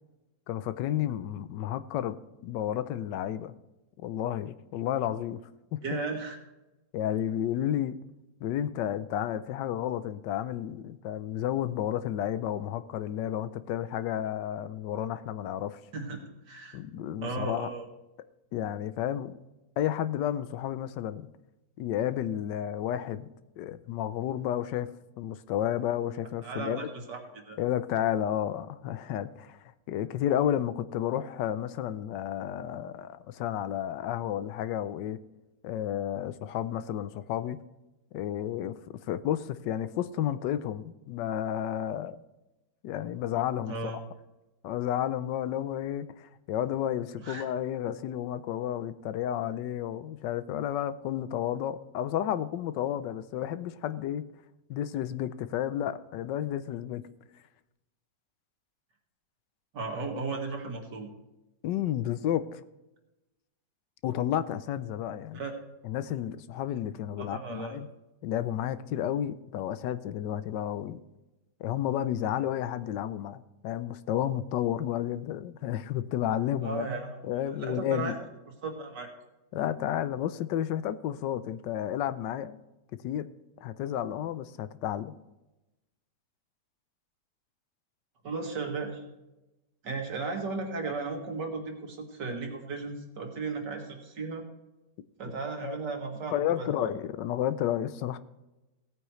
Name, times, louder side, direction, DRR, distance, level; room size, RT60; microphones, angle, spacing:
voice 1, 0.5-2.2 2.4-3.5 4.0-5.4 5.7-6.0 6.9-8.0 8.4-15.8 16.7-17.7 18.5-19.4 19.8-21.3 21.8-23.3 23.6-26.8 27.6-35.2 35.6-37.6 38.1-38.8 39.1-42.2 42.8-43.8 44.6-54.3 54.7-57.0 61.6-62.6 64.0-65.4 65.8-67.9 68.2-71.0 71.6-76.9 77.2-78.1 79.5-82.6 83.0-83.3 83.6-85.1 95.6-95.8 96.3-98.2, left 11 dB, 85° left, 13 dB, 1.3 m, -31 dB
voice 2, 5.8-6.4 15.9-16.8 17.2-17.9 26.4-27.6 43.7-44.0 47.2-47.4 59.7-61.1 65.3-65.5 67.2-67.8 76.6-77.2 77.6-78.1 78.6-79.1 88.2-89.0 89.8-94.4 95.2-96.9, right 3 dB, 80° right, 2 dB, 2.4 m, -35 dB
17.0 x 9.1 x 3.1 m, 1.0 s
omnidirectional pair, 1.9 m